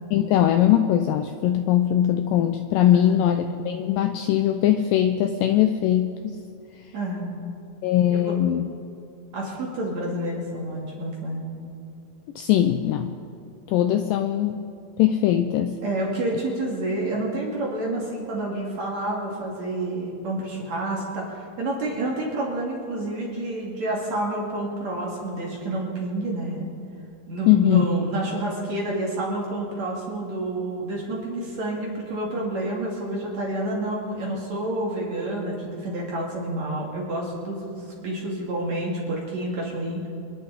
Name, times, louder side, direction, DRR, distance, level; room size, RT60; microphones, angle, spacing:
voice 1, 0.1-6.4 7.8-8.6 12.4-13.2 13.7-14.6 15.0-15.8 27.5-27.9, left 11 dB, 85° left, 7 dB, 1.9 m, -21 dB
voice 2, 2.9-3.4 6.9-7.4 8.0-8.3 9.3-11.5 15.8-26.7 27.3-40.1, right 1 dB, 50° right, -3 dB, 3.2 m, -29 dB
27.0 x 10.5 x 4.1 m, 2.6 s
omnidirectional pair, 4.5 m